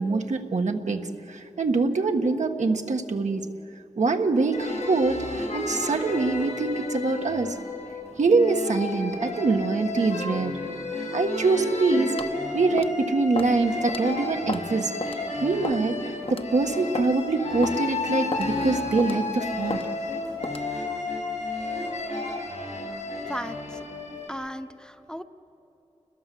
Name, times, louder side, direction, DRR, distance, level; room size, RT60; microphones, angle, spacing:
voice 1, 0.0-3.4 4.0-7.6 8.2-10.6 11.1-12.1 12.5-14.9 15.4-16.0 16.3-19.8, right 3 dB, 85° right, 4 dB, 1.5 m, -24 dB
sound 1, 4.5-24.3, left 2 dB, 85° left, 6.7 m, -32 dB
sound 2, 12.2-12.4 12.8-13.0 13.4-13.6 13.9-14.0 14.5-14.7 15.0-15.2 15.6-15.9 16.3-16.4 16.9-17.1 17.6-17.8 18.3-18.5 19.0-19.2 19.7-19.9 20.4-20.7, left 4 dB, 50° left, 0.9 m, -33 dB
voice 2, 23.2-23.8 24.3-25.2, equal, 5° left, 9 dB, 0.8 m, -36 dB
29.0 x 21.0 x 7.7 m, 2.9 s
wide cardioid pair, 75°, 12 cm